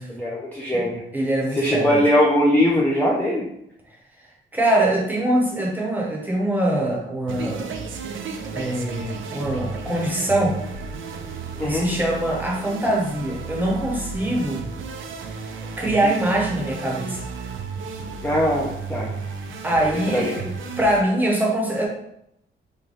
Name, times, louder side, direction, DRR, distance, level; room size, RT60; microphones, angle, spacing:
voice 1, 0.1-1.0 1.5-3.5 11.6-11.9 18.2-19.1 20.1-20.4, equal, 10° left, -3 dB, 0.4 m, -21 dB
voice 2, 1.1-2.0 4.5-7.7 8.5-10.6 11.6-14.6 15.8-17.2 19.6-21.9, right 1 dB, 10° right, -2 dB, 0.8 m, -23 dB
sound 1, 7.3-21.0, right 5 dB, 75° right, 0.5 m, -33 dB
3.2 x 2.2 x 3.8 m, 0.74 s
cardioid pair, 140°, 21 cm